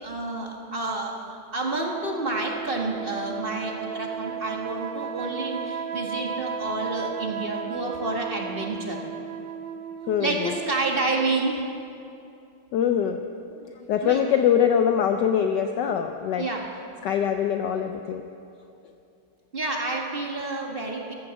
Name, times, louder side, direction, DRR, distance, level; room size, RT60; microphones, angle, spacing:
voice 1, 0.0-9.0 10.2-11.7 14.0-14.2 16.4-16.6 19.5-21.1, right 2 dB, 30° right, 0 dB, 1.7 m, -29 dB
sound 1, 1.7-11.4, right 7 dB, 75° right, 1.4 m, -35 dB
voice 2, 10.1-10.5 12.7-13.2 13.5-16.5 17.0-18.2, left 8 dB, 70° left, 6 dB, 1.2 m, -23 dB
14.5 x 11.5 x 7.1 m, 2.6 s
omnidirectional pair, 2.2 m